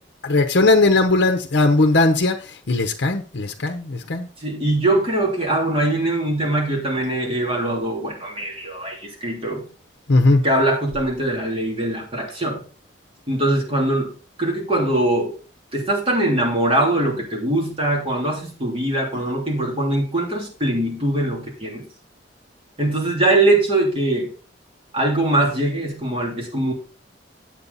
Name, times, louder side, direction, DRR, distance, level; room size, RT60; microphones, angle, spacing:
voice 1, 0.2-4.3 10.1-10.4, left 2 dB, 65° left, 4 dB, 0.8 m, -18 dB
voice 2, 4.4-9.7 10.4-12.6 13.3-14.1 14.4-15.3 15.7-21.9 22.8-24.3 24.9-26.7, right 1 dB, 30° right, -1 dB, 3.3 m, -22 dB
8.7 x 7.7 x 4.0 m, 0.37 s
head